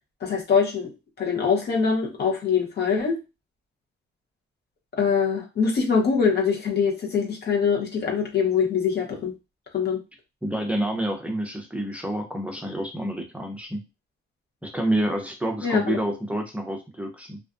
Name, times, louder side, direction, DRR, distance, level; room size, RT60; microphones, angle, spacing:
voice 1, 0.2-0.9 1.2-3.2 5.0-9.3 9.7-10.0 15.6-15.8, left 6 dB, 55° left, 0 dB, 0.9 m, -23 dB
voice 2, 10.4-13.8 14.6-17.4, right 1 dB, 5° right, 2 dB, 0.5 m, -28 dB
2.5 x 2.2 x 2.4 m, 0.27 s
cardioid pair, 90°, 20 cm